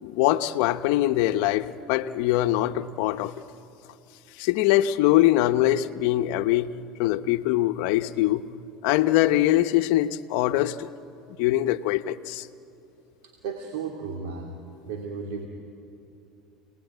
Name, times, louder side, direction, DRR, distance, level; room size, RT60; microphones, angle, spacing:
voice 1, 0.0-3.3 4.4-6.7 7.0-8.5 8.8-10.9 11.4-12.5, left 14 dB, 75° left, 0.9 m, -23 dB
voice 2, 13.4-14.6 14.8-15.5, right 5 dB, 80° right, 2.9 m, -34 dB
28.5 x 19.5 x 9.5 m
supercardioid pair, 110°, 0 cm